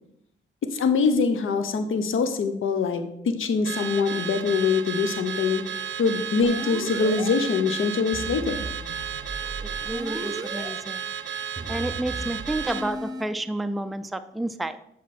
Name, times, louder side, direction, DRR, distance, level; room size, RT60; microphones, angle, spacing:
voice 1, 0.7-5.6 6.0-8.7, left 5 dB, 80° left, 8 dB, 1.0 m, -24 dB
Car / Alarm, 3.6-12.9, right 8 dB, 65° right, 0.7 m, -33 dB
sound 1, 6.4-7.3 8.1-10.7 11.6-13.2, right 1 dB, 20° right, 1.4 m, -36 dB
voice 2, 9.9-11.0 11.7-14.8, right 1 dB, ahead, 9 dB, 0.5 m, -30 dB
8.4 x 6.0 x 4.3 m, 0.77 s
cardioid pair, 65°, 20 cm